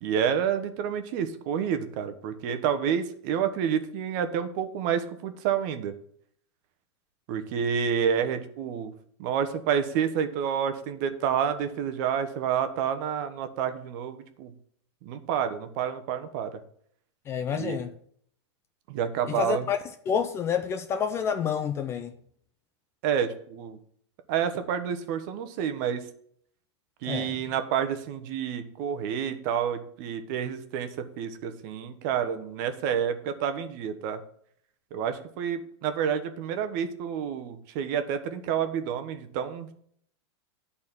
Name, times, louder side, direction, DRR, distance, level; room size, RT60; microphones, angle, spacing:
voice 1, 0.0-5.9 7.3-8.9 9.2-14.5 15.0-16.6 17.5-17.8 18.9-19.6 23.0-23.8 24.3-26.0 27.0-34.2 34.9-39.7, right 8 dB, 45° right, 1.1 m, -29 dB
voice 2, 17.3-17.9 19.3-19.8 20.1-22.1 27.0-27.4, left 7 dB, 20° left, 0.4 m, -28 dB
10.5 x 4.2 x 7.1 m
supercardioid pair, 155°, 15 cm